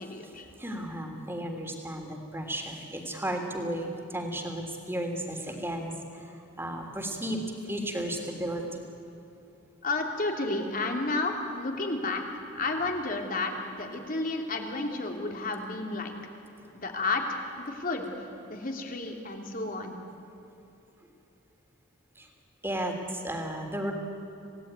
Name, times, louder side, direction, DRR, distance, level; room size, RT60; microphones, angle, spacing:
voice 1, 0.0-0.5 9.8-12.2 12.5-16.1 16.8-18.1 18.5-20.0, left 3 dB, 45° left, 2 dB, 3.1 m, -31 dB
voice 2, 0.5-6.3 6.6-8.8 22.2-22.3 22.6-23.9, right 1 dB, 10° right, 3 dB, 3.2 m, -34 dB
27.5 x 17.5 x 9.7 m, 3.0 s
head